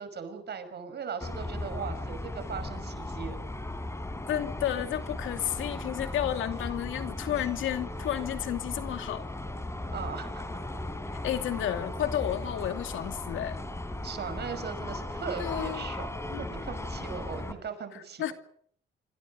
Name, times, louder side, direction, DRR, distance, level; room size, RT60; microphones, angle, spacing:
voice 1, 0.0-3.4 9.9-10.4 14.0-18.3, right 6 dB, 55° right, 10 dB, 5.7 m, -39 dB
sound 1, 1.2-17.5, left 1 dB, 15° left, 4.1 m, -37 dB
voice 2, 4.3-9.3 11.1-13.6 15.4-15.9 16.3-16.4 17.9-18.3, left 11 dB, 80° left, 8 dB, 2.6 m, -32 dB
26.5 x 26.0 x 5.3 m, 0.62 s
cardioid pair, 90°, 20 cm